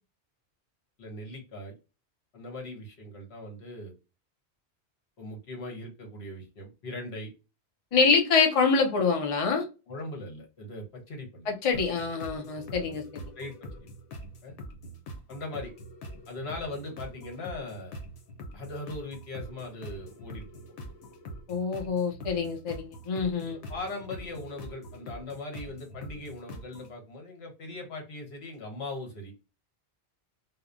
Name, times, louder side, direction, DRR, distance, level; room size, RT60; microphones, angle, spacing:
voice 1, 1.0-1.8 2.3-3.9 5.2-7.3 9.9-11.5 13.4-13.9 14.4-14.5 15.3-15.7 16.3-18.0 18.5-20.4 23.4-29.3, left 2 dB, 70° left, 1 dB, 1.2 m, -40 dB
voice 2, 7.9-9.7 11.5-13.2 21.5-23.6, left 5 dB, 40° left, 3 dB, 0.5 m, -26 dB
sound 1, 11.7-26.9, equal, 90° left, 1.0 m, -44 dB
2.8 x 2.0 x 2.4 m, 0.30 s
omnidirectional pair, 1.1 m